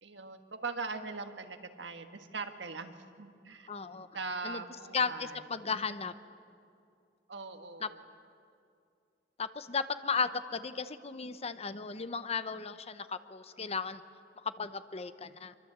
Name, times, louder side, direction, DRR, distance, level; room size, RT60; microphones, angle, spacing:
voice 1, 0.0-3.7 4.1-5.4 7.3-8.0, right 4 dB, 75° right, 7 dB, 1.7 m, -41 dB
voice 2, 3.7-4.1 4.4-4.6 4.9-6.1 7.8-7.9 9.4-14.0 14.4-15.6, left 5 dB, 35° left, 12 dB, 0.9 m, -35 dB
26.0 x 23.5 x 8.1 m, 2.5 s
head